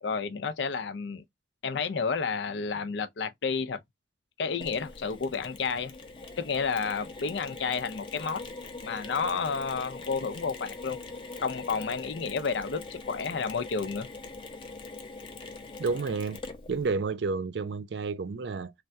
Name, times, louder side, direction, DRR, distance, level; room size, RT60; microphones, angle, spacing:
voice 1, 0.0-1.2 1.6-3.8 4.4-5.9 6.4-8.4 8.8-11.0 11.4-14.1, left 5 dB, 80° left, 0.5 m, -31 dB
Mechanisms, 4.6-16.9, left 3 dB, 30° left, 0.6 m, -43 dB
voice 2, 15.8-16.4 16.7-18.7, right 4 dB, 70° right, 0.4 m, -30 dB
3.3 x 2.2 x 2.6 m
head